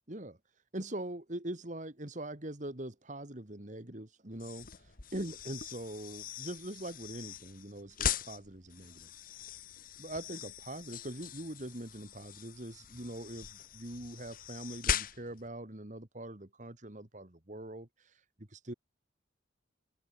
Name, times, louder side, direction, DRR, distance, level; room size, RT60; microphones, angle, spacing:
voice 1, 0.1-0.4 0.7-9.1 10.0-18.7, right 1 dB, 40° right, 2.0 m, -43 dB
sound 1, 4.3-15.5, left 8 dB, 45° left, 1.5 m, -40 dB
open air
head